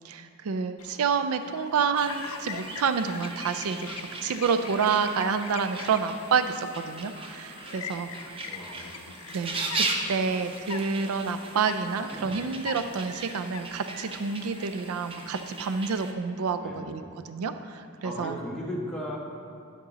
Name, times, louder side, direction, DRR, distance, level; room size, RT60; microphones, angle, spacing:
voice 1, 0.0-3.9 4.2-8.5 9.3-18.4, right 5 dB, 85° right, 10 dB, 0.4 m, -29 dB
Chirp tweet, 0.8-15.9, left 6 dB, 85° left, 0.5 m, -44 dB
sound 1, 1.9-16.1, right 3 dB, 25° right, 0.6 m, -38 dB
voice 2, 8.4-8.9 12.1-12.4 16.6-17.0 18.0-19.2, equal, 5° left, -4 dB, 1.3 m, -36 dB
10.5 x 6.0 x 4.0 m, 2.3 s
head